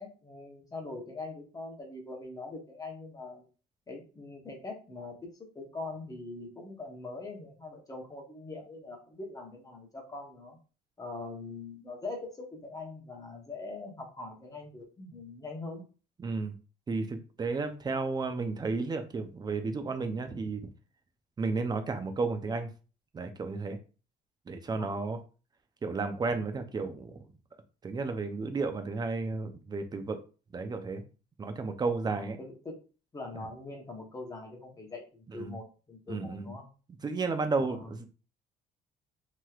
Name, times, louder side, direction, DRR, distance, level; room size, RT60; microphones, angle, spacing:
voice 1, 0.0-3.4 3.9-10.6 11.0-15.8 24.7-25.0 32.0-32.8 33.1-36.6 37.6-37.9, left 3 dB, 20° left, 0 dB, 1.0 m, -42 dB
voice 2, 16.2-16.5 16.9-20.6 21.4-22.7 23.1-23.8 24.5-25.2 25.8-27.3 27.8-30.2 30.5-31.0 31.4-32.4 35.3-35.5 36.1-36.5 37.0-38.1, right 4 dB, 25° right, 8 dB, 0.5 m, -32 dB
3.0 x 2.9 x 2.4 m, 0.35 s
cardioid pair, 110°, 17 cm